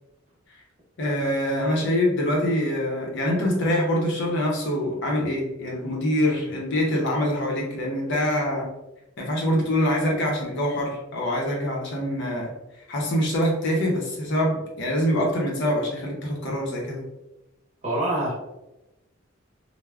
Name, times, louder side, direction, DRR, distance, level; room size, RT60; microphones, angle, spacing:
voice 1, 1.0-8.7 9.2-12.5 12.9-17.0, equal, 60° left, -1 dB, 0.7 m, -24 dB
voice 2, 17.8-18.3, right 1 dB, 35° right, -5 dB, 1.1 m, -25 dB
3.3 x 2.0 x 2.3 m, 0.95 s
head